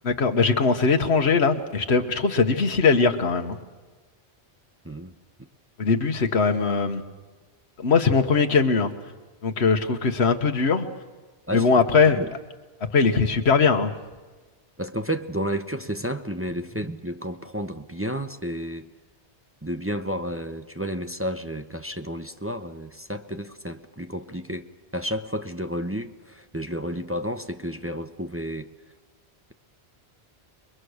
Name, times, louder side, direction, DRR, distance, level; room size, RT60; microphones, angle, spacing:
voice 1, 0.0-3.6 5.8-7.0 7.8-8.9 9.4-10.9 11.5-12.2 12.9-13.9, left 4 dB, 70° left, 6 dB, 1.6 m, -20 dB
voice 2, 14.8-18.9 19.6-24.7 24.9-28.7, equal, 15° right, 7 dB, 0.8 m, -31 dB
29.5 x 22.0 x 6.5 m, 1.3 s
omnidirectional pair, 1.1 m